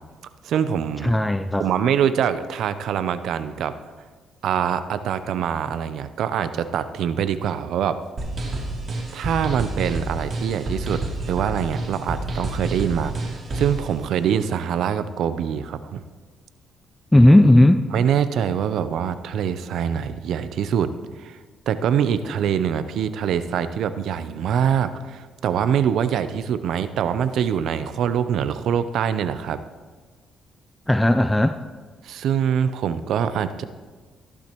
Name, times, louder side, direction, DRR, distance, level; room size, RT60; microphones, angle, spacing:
voice 1, 0.4-1.1 1.6-3.8 4.4-8.0 9.1-16.0 17.9-20.9 21.2-21.4 21.7-29.6 32.0-33.6, right 8 dB, 75° right, 12 dB, 0.6 m, -24 dB
voice 2, 1.0-1.6 17.1-17.8 30.9-31.6, left 1 dB, 10° left, 9 dB, 0.4 m, -15 dB
sound 1, 8.2-13.8, right 2 dB, 45° right, 2.9 m, -29 dB
14.5 x 12.0 x 3.0 m, 1.4 s
cardioid pair, 90°, 0 cm